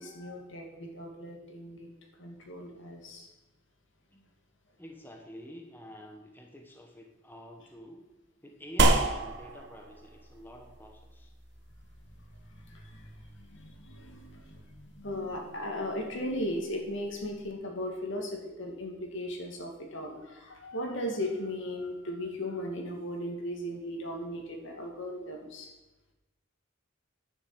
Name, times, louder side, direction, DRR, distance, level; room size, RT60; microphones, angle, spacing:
voice 1, 0.0-1.9 2.2-3.3 12.5-25.7, left 1 dB, 65° left, 1 dB, 2.4 m, -37 dB
voice 2, 4.8-8.1 8.4-11.3, left 1 dB, 10° left, 2 dB, 1.1 m, -48 dB
sound 1, 8.8-17.5, right 2 dB, 60° right, 1.2 m, -33 dB
10.0 x 7.0 x 8.1 m, 1.0 s
head